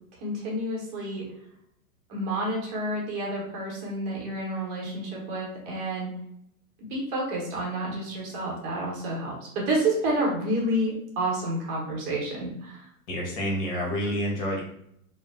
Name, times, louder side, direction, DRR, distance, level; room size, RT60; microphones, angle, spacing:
voice 1, 0.2-1.2 2.1-6.1 6.9-12.8, right 1 dB, 35° right, -3 dB, 0.9 m, -29 dB
voice 2, 13.1-14.6, equal, 45° left, -3 dB, 1.1 m, -28 dB
2.5 x 2.1 x 2.4 m, 0.74 s
hypercardioid pair, 105°, 46 cm